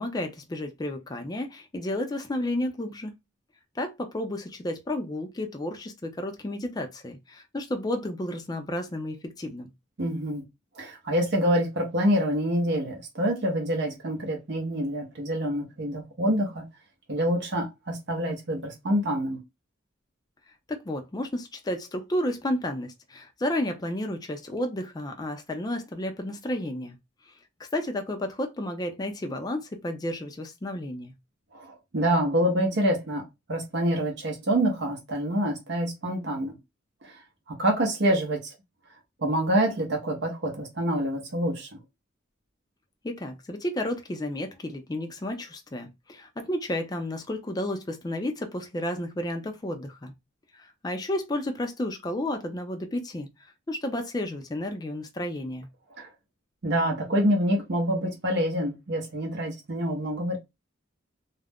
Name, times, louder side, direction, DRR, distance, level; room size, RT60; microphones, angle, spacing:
voice 1, 0.0-3.1 3.8-9.7 20.7-27.0 27.6-31.1 43.0-50.1 50.5-53.3 53.7-55.7, left 1 dB, 20° left, 0.4 m, -32 dB
voice 2, 10.0-10.4 10.7-16.6 17.1-19.4 31.5-33.2 33.5-36.6 37.0-38.5 39.2-41.7 55.9-56.1 56.6-60.4, equal, 60° right, 0.7 m, -26 dB
2.4 x 2.0 x 3.4 m
head